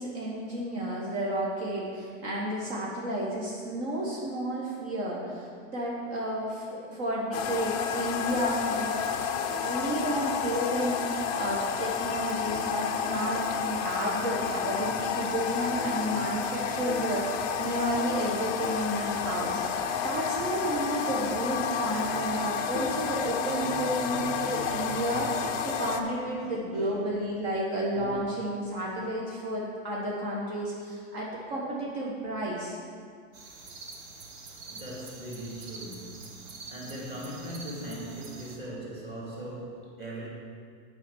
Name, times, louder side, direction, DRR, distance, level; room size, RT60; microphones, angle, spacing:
voice 1, 0.0-9.0 9.6-19.6 20.0-32.8, right 1 dB, 55° right, -4 dB, 1.6 m, -32 dB
sound 1, 7.3-26.0, left 6 dB, 25° left, 0.4 m, -31 dB
voice 2, 26.4-27.2 27.9-28.3 34.6-40.3, right 1 dB, 25° right, -5 dB, 2.4 m, -40 dB
sound 2, 33.3-38.6, right 3 dB, 85° right, 1.4 m, -46 dB
7.4 x 5.1 x 7.0 m, 2.1 s
supercardioid pair, 145°, 39 cm